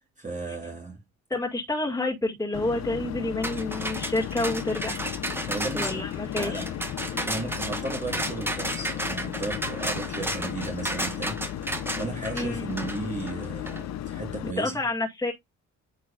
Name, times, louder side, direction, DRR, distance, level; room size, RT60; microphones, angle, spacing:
voice 1, 0.2-1.0 5.5-6.1 6.4-6.8 7.1-14.8, right 3 dB, 25° right, 1.8 m, -35 dB
voice 2, 1.3-5.0 5.7-6.6 12.3-12.7 14.6-15.3, left 2 dB, 10° left, 2.0 m, -29 dB
sound 1, 2.5-14.5, left 11 dB, 60° left, 0.7 m, -35 dB
sound 2, 3.4-13.8, right 1 dB, 5° right, 1.3 m, -33 dB
9.1 x 4.7 x 2.4 m
cardioid pair, 90°, 30 cm